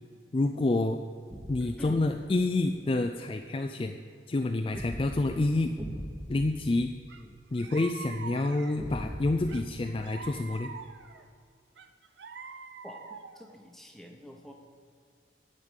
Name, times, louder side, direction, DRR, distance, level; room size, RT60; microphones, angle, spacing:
voice 1, 0.3-1.0 1.5-4.0 4.3-5.7 6.3-6.9 7.5-10.7, left 2 dB, 30° left, 5 dB, 0.4 m, -28 dB
sound 1, 1.3-2.7 4.7-7.7 8.8-10.9, equal, 20° right, 1.2 m, -42 dB
voice 2, 1.6-2.1 7.2-7.4 12.8-14.5, equal, ahead, 2 dB, 1.0 m, -46 dB
sound 2, 7.1-7.2 7.6-8.9 9.5-11.2 11.8-13.5, right 5 dB, 80° right, 0.7 m, -45 dB
10.5 x 5.2 x 8.1 m, 2.3 s
head